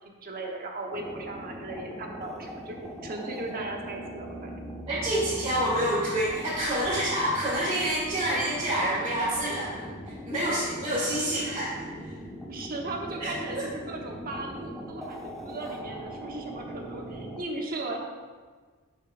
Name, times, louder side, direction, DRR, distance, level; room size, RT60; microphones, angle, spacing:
voice 1, 0.0-4.6 12.5-18.0, right 2 dB, 40° right, 1 dB, 1.1 m, -37 dB
sound 1, 0.9-17.4, equal, ahead, 0.9 m, -41 dB
voice 2, 4.9-9.9 10.3-11.7 13.2-13.6, right 1 dB, 25° right, -11 dB, 2.0 m, -27 dB
11.5 x 5.6 x 2.5 m, 1.5 s
head